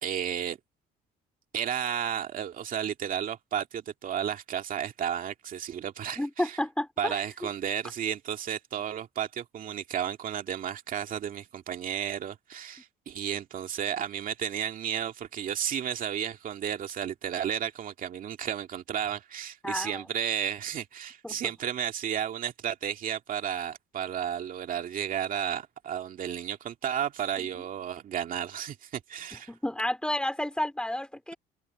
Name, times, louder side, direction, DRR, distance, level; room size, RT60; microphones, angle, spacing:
voice 1, 0.0-0.6 1.5-6.5 7.0-29.5, right 9 dB, 55° right, 2.2 m, -33 dB
voice 2, 6.2-7.2 19.6-20.0 21.2-21.5 27.4-27.5 29.3-31.3, left 1 dB, 5° left, 4.3 m, -31 dB
open air
cardioid pair, 110°, 17 cm